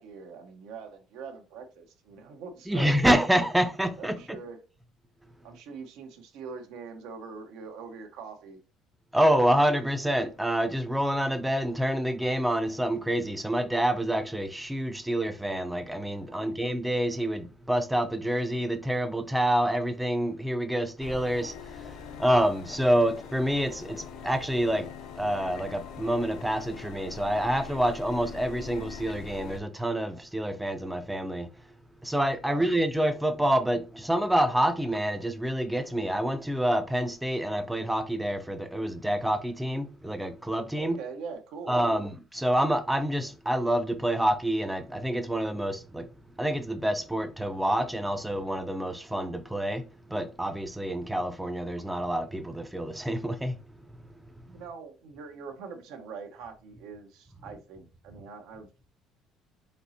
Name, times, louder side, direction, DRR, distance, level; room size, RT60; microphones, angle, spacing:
voice 1, 0.0-3.0 4.0-4.6 5.4-8.6 16.3-16.6 32.4-32.8 40.8-42.1 54.4-58.9, right 5 dB, 80° right, 0.8 m, -43 dB
voice 2, 2.7-4.2 9.1-24.9 25.2-31.5 32.0-41.0 41.7-46.1 46.4-53.6, right 1 dB, 5° right, 0.4 m, -27 dB
sound 1, 21.0-29.6, left 7 dB, 65° left, 0.5 m, -43 dB
4.3 x 4.0 x 2.7 m
cardioid pair, 130°, 0 cm